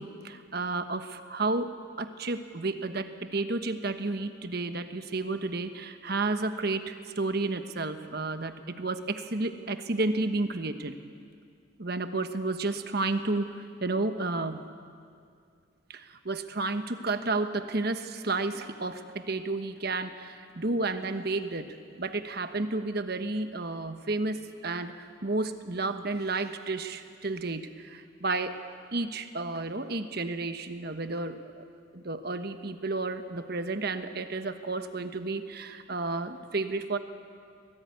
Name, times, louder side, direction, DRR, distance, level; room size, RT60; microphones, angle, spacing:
voice 1, 0.0-1.7 2.0-10.9 11.8-14.6 15.9-28.6 28.9-31.7 31.9-37.0, right 3 dB, 50° right, 9 dB, 1.2 m, -32 dB
23.5 x 18.5 x 9.7 m, 2.3 s
head